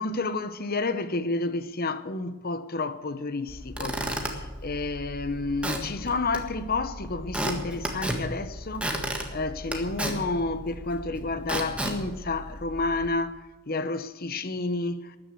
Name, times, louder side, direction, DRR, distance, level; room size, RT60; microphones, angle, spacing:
voice 1, 0.0-9.0 9.3-13.4 13.7-15.2, left 3 dB, 45° left, 0.9 m, -30 dB
Squeak / Wood, 3.5-13.1, right 1 dB, 5° right, 1.6 m, -34 dB
13.5 x 9.9 x 7.8 m
head